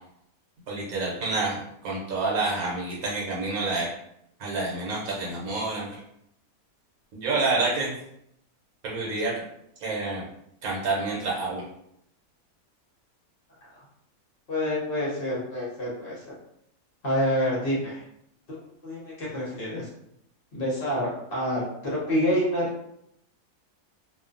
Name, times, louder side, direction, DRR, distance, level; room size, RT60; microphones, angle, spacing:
voice 1, 0.7-3.9 4.4-5.9 7.1-7.9 8.8-9.4 9.8-10.2 10.6-11.6, right 3 dB, 70° right, -3 dB, 1.1 m, -28 dB
voice 2, 14.5-16.3 17.0-18.0 18.5-19.9 20.5-22.7, equal, 50° left, -6 dB, 0.8 m, -27 dB
2.5 x 2.3 x 2.5 m, 0.74 s
omnidirectional pair, 1.6 m